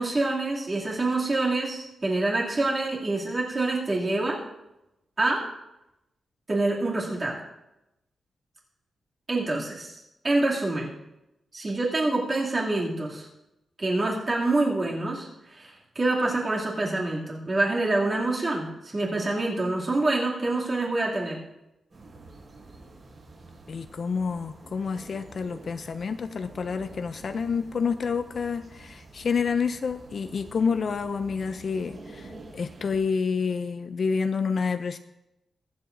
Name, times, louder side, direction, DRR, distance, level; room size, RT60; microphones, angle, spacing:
voice 1, 0.0-4.4 5.2-5.4 6.5-7.4 9.3-10.9 11.5-13.3 13.8-21.4, right 2 dB, 30° right, -4 dB, 2.5 m, -26 dB
sound 1, 21.9-33.0, right 2 dB, 50° right, 4.2 m, -48 dB
voice 2, 23.7-35.0, left 5 dB, 45° left, 10 dB, 0.4 m, -28 dB
22.5 x 7.7 x 2.6 m, 0.92 s
wide cardioid pair, 155°, 0 cm